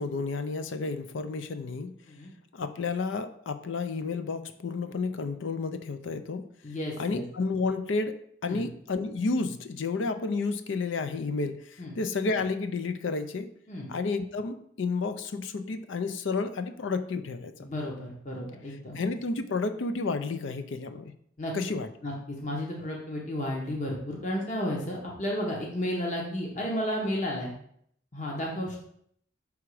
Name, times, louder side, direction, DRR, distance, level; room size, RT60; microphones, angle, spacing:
voice 1, 0.0-1.9 2.5-6.5 7.0-13.5 13.9-17.7 19.0-21.1 21.5-21.9, left 4 dB, 75° left, 10 dB, 0.5 m, -31 dB
voice 2, 6.6-7.2 8.5-8.7 11.8-12.0 13.7-13.9 17.6-19.0 21.4-21.5 22.0-27.5 28.1-28.8, equal, 40° left, -2 dB, 1.0 m, -32 dB
6.0 x 3.6 x 4.8 m, 0.67 s
head